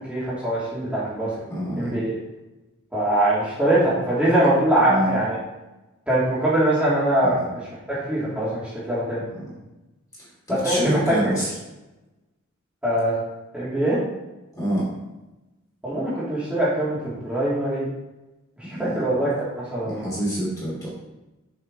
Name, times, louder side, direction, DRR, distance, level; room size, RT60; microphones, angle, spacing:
voice 1, 0.1-1.3 1.7-2.2 2.9-5.4 6.1-7.6 7.9-9.2 10.5-11.4 12.8-13.1 13.5-14.0 15.8-17.9 18.6-20.1, right 1 dB, 5° right, -10 dB, 2.7 m, -22 dB
voice 2, 1.5-2.0 4.9-5.1 7.2-7.3 10.6-11.5 14.6-14.9 18.7-19.0 19.9-20.9, right 1 dB, 15° left, -7 dB, 2.6 m, -26 dB
7.2 x 5.6 x 5.3 m, 1.0 s
head